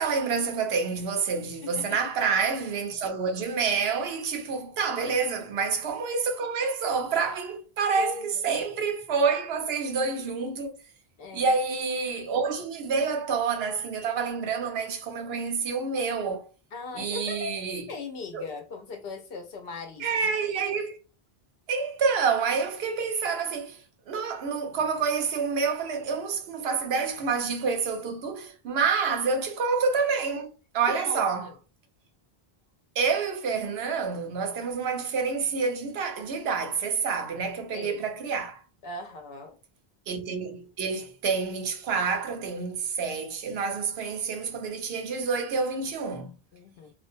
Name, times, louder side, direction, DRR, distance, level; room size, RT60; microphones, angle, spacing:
voice 1, 0.0-10.7 11.3-16.5 16.9-17.9 18.3-18.4 20.0-21.0 21.7-30.5 30.7-31.5 33.0-38.6 40.1-46.4, right 5 dB, 80° right, 0.8 m, -28 dB
voice 2, 1.6-2.0 5.1-5.2 8.0-8.4 11.2-11.6 16.7-17.5 17.9-20.2 29.1-29.2 30.9-31.5 37.7-38.0 38.8-39.6 46.5-46.9, left 4 dB, 70° left, 0.8 m, -39 dB
2.4 x 2.0 x 2.5 m
omnidirectional pair, 1.0 m